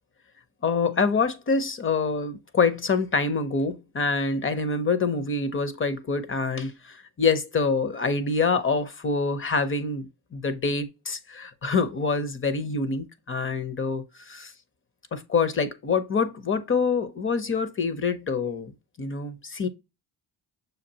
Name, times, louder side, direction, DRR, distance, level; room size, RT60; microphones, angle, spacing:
voice 1, 0.6-14.5 15.1-19.7, left 4 dB, 30° left, 0.7 m, -26 dB
6.5 x 2.4 x 2.8 m
cardioid pair, 105°, 40 cm